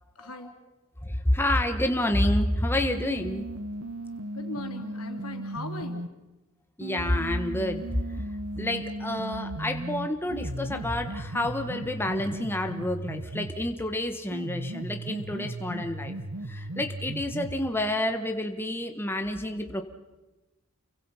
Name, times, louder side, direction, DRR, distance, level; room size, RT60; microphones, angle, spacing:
voice 1, 0.2-0.5 4.3-6.1, left 2 dB, 85° left, 4 dB, 3.6 m, -39 dB
voice 2, 1.0-3.4 6.8-8.0 8.6-16.1 16.5-19.8, left 1 dB, 10° left, 5 dB, 1.3 m, -28 dB
sound 1, 2.8-6.1 6.8-13.8 14.3-17.8, right 1 dB, 75° right, 1.2 m, -36 dB
29.5 x 23.5 x 5.7 m, 1.1 s
head